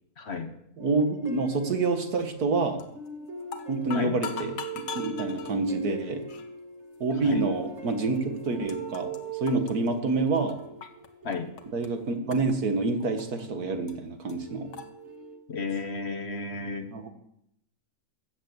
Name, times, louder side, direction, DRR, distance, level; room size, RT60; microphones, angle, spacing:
voice 1, 0.2-0.5 3.9-4.1 7.2-7.4 11.2-11.5 15.5-16.9, left 4 dB, 45° left, 8 dB, 1.3 m, -33 dB
sound 1, 0.8-2.5 3.0-13.8 14.4-15.4, right 3 dB, 50° right, 2.1 m, -42 dB
voice 2, 0.8-2.8 3.7-6.2 7.0-9.1 9.4-10.6 11.7-14.7 16.9-17.1, right 3 dB, 75° right, 6 dB, 2.1 m, -27 dB
sound 2, 2.8-3.1 3.4-5.6 6.3-6.5 7.2-7.3 8.2-8.3 8.4-9.2 9.5-11.1 11.3-11.9 12.3-13.5 13.9-14.0 14.3-14.4 14.7-14.9, left 7 dB, 85° left, 1.7 m, -40 dB
14.0 x 8.6 x 8.0 m, 0.78 s
omnidirectional pair, 1.6 m